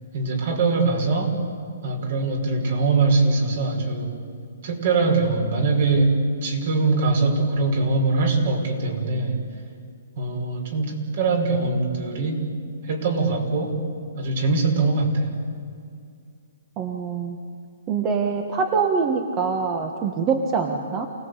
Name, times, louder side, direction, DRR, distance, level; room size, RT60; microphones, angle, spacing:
voice 1, 0.1-1.4 1.8-4.2 4.6-9.4 10.2-12.5 12.9-13.8 14.2-15.3, right 3 dB, 55° right, 3 dB, 5.3 m, -22 dB
voice 2, 16.8-17.4 17.9-21.1, right 5 dB, 25° right, 4 dB, 1.5 m, -24 dB
28.5 x 18.5 x 8.2 m, 2.3 s
hypercardioid pair, 160°, 0 cm